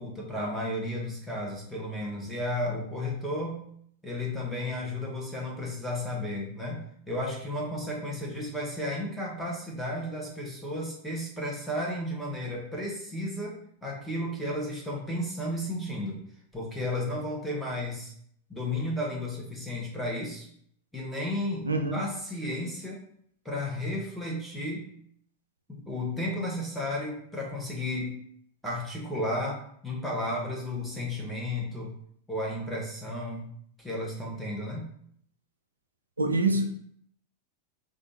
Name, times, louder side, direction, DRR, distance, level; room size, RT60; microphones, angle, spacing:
voice 1, 0.0-3.6 4.0-13.5 13.8-16.2 16.5-18.1 18.5-20.5 20.9-23.0 23.4-24.9 25.7-28.2 28.6-31.9 32.3-33.5 33.8-34.8, left 1 dB, ahead, -5 dB, 1.2 m, -33 dB
voice 2, 21.6-22.0 36.2-36.7, right 2 dB, 80° right, 6 dB, 0.3 m, -25 dB
3.3 x 2.5 x 4.0 m, 0.65 s
figure-of-eight pair, 90°, 0 cm